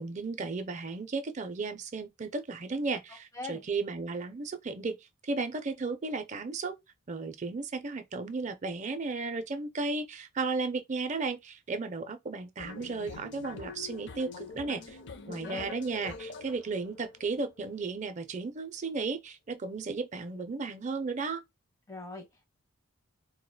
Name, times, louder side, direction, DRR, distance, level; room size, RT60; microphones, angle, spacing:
voice 1, 0.0-5.0 5.2-6.8 7.1-15.0 15.3-21.4, right 3 dB, 35° right, 0.4 m, -34 dB
voice 2, 3.1-3.6 15.2-15.7 21.9-22.5, left 2 dB, 15° left, 0.7 m, -43 dB
sound 1, 12.6-18.4, left 4 dB, 55° left, 0.5 m, -45 dB
4.6 x 2.1 x 2.2 m
head